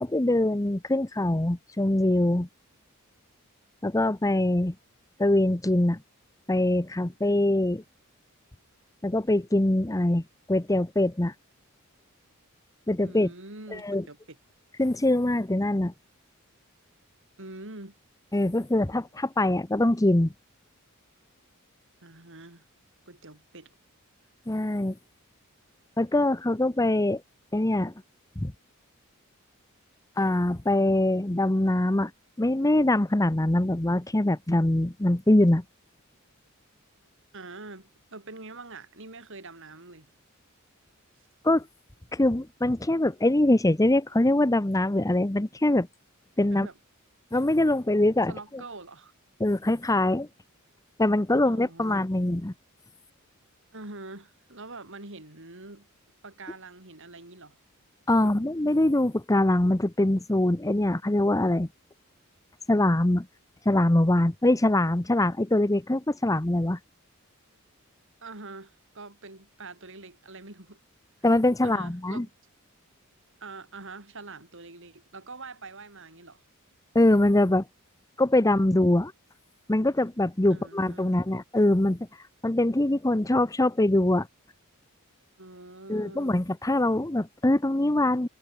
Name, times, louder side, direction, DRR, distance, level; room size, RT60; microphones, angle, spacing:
voice 1, 0.0-2.5 3.8-4.7 5.2-6.0 6.5-7.8 9.0-10.2 10.5-11.3 12.9-13.3 13.7-14.0 14.8-15.9 18.3-20.3 24.5-24.9 26.0-27.2 27.5-27.9 28.4-28.5 30.2-32.1 32.4-35.6 41.4-41.7 42.1-45.9 46.4-46.7 47.3-48.3 49.4-50.3 51.0-52.5 58.1-61.7 62.7-63.3 63.6-66.8 71.2-72.3 76.9-77.7 78.2-79.1 79.7-82.0 82.4-84.3 85.9-88.3, left 1 dB, 15° left, 0.8 m, -23 dB
voice 2, 13.0-14.4 17.4-17.9 22.0-22.6 23.1-23.7 37.3-40.1 46.5-46.7 48.3-49.1 51.4-52.0 53.7-55.9 56.2-57.6 58.1-58.4 68.2-70.8 71.6-72.3 73.4-76.4 80.5-81.2 85.4-86.3, right 3 dB, 60° right, 4.8 m, -44 dB
head